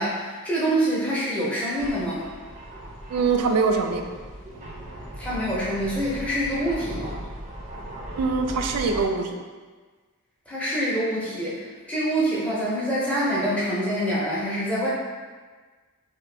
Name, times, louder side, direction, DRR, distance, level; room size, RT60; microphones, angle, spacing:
voice 1, 0.0-2.2 5.2-7.1 10.5-14.9, right 1 dB, 5° left, -8 dB, 0.7 m, -26 dB
sound 1, 1.8-9.0, right 1 dB, 35° right, 0.5 m, -38 dB
voice 2, 3.1-4.0 8.1-9.4, right 4 dB, 90° right, 6 dB, 0.3 m, -23 dB
2.8 x 2.4 x 3.2 m, 1.4 s
head